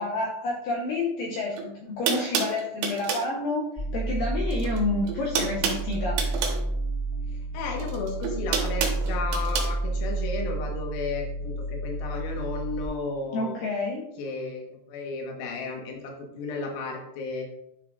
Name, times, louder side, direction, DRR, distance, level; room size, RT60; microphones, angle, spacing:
voice 1, 0.0-6.2 13.3-14.1, left 2 dB, 85° left, -1 dB, 2.0 m, -29 dB
sound 1, 1.5-1.6 2.1-3.3 4.5-4.8 5.0-6.6 7.8-9.7, right 6 dB, 75° right, 3.2 m, -28 dB
sound 2, 3.8-12.9, right 2 dB, 5° left, 1.9 m, -30 dB
voice 2, 7.5-13.6 14.2-17.4, left 4 dB, 70° left, 1 dB, 2.7 m, -33 dB
10.5 x 5.8 x 2.4 m, 0.83 s
omnidirectional pair, 5.2 m